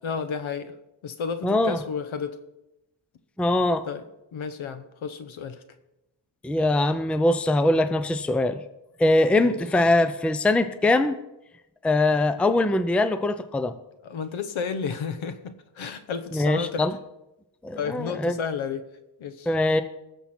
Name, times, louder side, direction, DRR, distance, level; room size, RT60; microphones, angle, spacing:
voice 1, 0.0-0.7 1.0-2.4 3.8-4.0 4.3-5.6 9.4-9.6 14.0-16.9 17.7-18.8 19.2-19.5, left 6 dB, 75° left, 10 dB, 1.0 m, -32 dB
voice 2, 1.4-1.8 3.4-3.9 6.4-8.6 9.0-11.2 11.8-13.7 16.3-16.9 17.6-18.3 19.5-19.8, left 2 dB, 5° left, 12 dB, 0.5 m, -22 dB
20.0 x 7.1 x 4.3 m, 0.92 s
wide cardioid pair, 125°, 48 cm